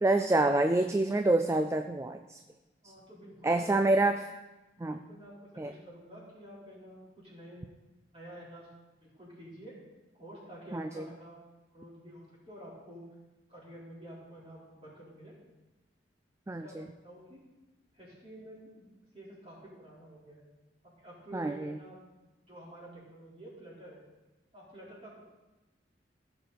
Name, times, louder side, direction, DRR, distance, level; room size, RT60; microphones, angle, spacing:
voice 1, 0.0-2.4 3.4-4.2 4.8-5.0 5.6-5.7 10.7-11.1 16.5-16.9 21.3-21.8, right 2 dB, 15° right, 7 dB, 0.3 m, -27 dB
voice 2, 2.8-3.9 4.9-7.6 8.1-8.7 9.0-9.7 10.1-11.4 11.7-13.0 13.5-15.3 16.6-17.4 17.9-18.9 19.1-20.4 20.8-22.0 22.5-24.1 24.5-25.2, right 1 dB, 30° right, -6 dB, 3.9 m, -50 dB
15.5 x 6.8 x 4.0 m, 1.1 s
head